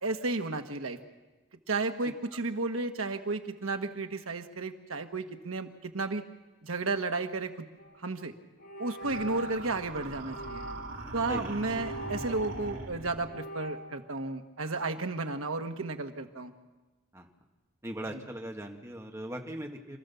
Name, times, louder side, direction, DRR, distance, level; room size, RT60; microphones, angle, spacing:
voice 1, 0.0-1.0 1.7-6.2 6.6-7.7 8.0-8.3 8.8-10.6 11.1-16.5 18.1-18.2, right 3 dB, 80° right, 6 dB, 1.4 m, -33 dB
sound 1, 7.8-8.0 8.6-9.7 10.3-11.0 11.6-12.9 13.3-13.8, right 1 dB, 80° left, 3.6 m, -42 dB
sound 2, 9.0-13.3, right 2 dB, 65° right, 3.8 m, -41 dB
voice 2, 17.8-20.0, right 1 dB, 15° right, 2 dB, 1.7 m, -39 dB
27.0 x 14.5 x 7.0 m, 1.2 s
head